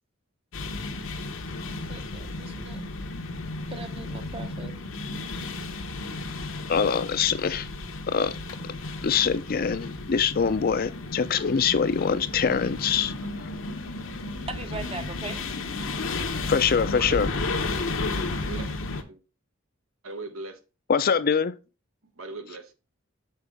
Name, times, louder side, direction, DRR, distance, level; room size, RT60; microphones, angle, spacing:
sound 1, 0.5-19.0, left 3 dB, 70° left, 0.8 m, -33 dB
voice 1, 1.8-2.8 3.7-4.7 14.5-15.5, right 3 dB, 30° right, 0.7 m, -39 dB
voice 2, 6.7-7.7 8.1-8.3 9.0-13.1 16.5-17.3 20.9-21.5, left 6 dB, 45° left, 0.5 m, -24 dB
voice 3, 17.0-17.3 18.4-18.7 19.1-19.2 20.0-20.6 22.2-22.7, right 2 dB, 90° right, 1.1 m, -38 dB
6.6 x 4.7 x 3.5 m
head